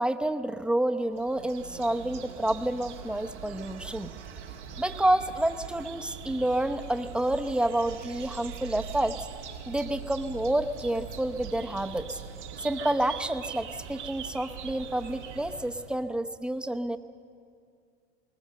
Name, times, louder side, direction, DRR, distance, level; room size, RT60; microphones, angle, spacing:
voice 1, 0.0-4.1 4.8-9.2 9.7-12.2 12.6-17.0, right 1 dB, 5° right, 8 dB, 0.8 m, -29 dB
sound 1, 1.1-16.0, right 7 dB, 85° right, 2.0 m, -42 dB
21.0 x 18.5 x 7.5 m, 2.3 s
hypercardioid pair, 95°, 34 cm